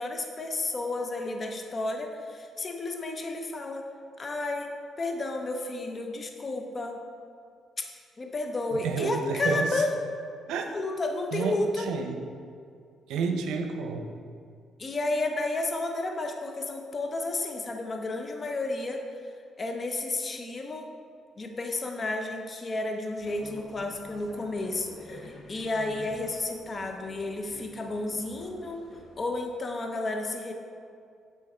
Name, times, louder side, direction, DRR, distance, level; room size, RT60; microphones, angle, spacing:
voice 1, 0.0-3.8 4.2-4.7 5.0-7.0 7.8-7.9 8.2-9.9 10.7-11.9 14.8-19.0 19.6-20.9 21.4-28.8 29.2-30.5, left 2 dB, 35° left, 3 dB, 0.6 m, -32 dB
voice 2, 8.8-9.8 10.5-10.6 11.3-12.2 13.1-14.1, right 5 dB, 90° right, 4 dB, 0.6 m, -30 dB
sound 1, 23.2-29.3, left 2 dB, 60° left, 0.9 m, -49 dB
7.4 x 3.9 x 4.2 m, 2.3 s
cardioid pair, 90°, 0 cm